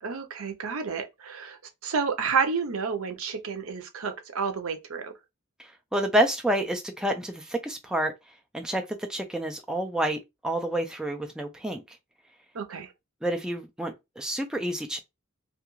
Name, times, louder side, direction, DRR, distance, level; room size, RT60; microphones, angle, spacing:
voice 1, 0.0-1.6 1.8-5.1 12.5-12.9, right 5 dB, 70° right, 0.6 m, -30 dB
voice 2, 5.6-8.1 8.5-12.0 13.2-15.0, right 1 dB, 5° right, 0.3 m, -29 dB
2.3 x 2.3 x 3.0 m
head